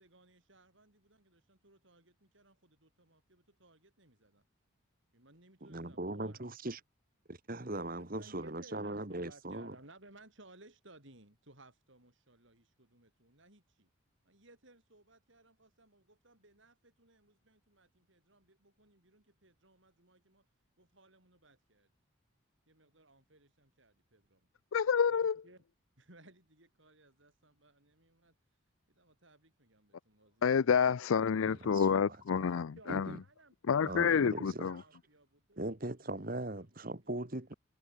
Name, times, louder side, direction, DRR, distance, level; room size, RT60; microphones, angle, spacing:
voice 1, 0.0-4.4 5.1-6.4 7.9-13.9 14.2-20.5 20.8-21.9 22.7-24.5 25.1-25.6 26.0-28.4 28.9-30.7 32.4-37.1, right 2 dB, 65° right, 6.3 m, -61 dB
voice 2, 5.6-6.8 7.3-9.7 31.5-32.5 32.9-33.2 33.8-34.9 35.6-37.5, right 2 dB, 45° right, 1.8 m, -40 dB
voice 3, 24.7-25.4 30.4-33.0 33.7-34.8, left 6 dB, 75° left, 0.4 m, -28 dB
head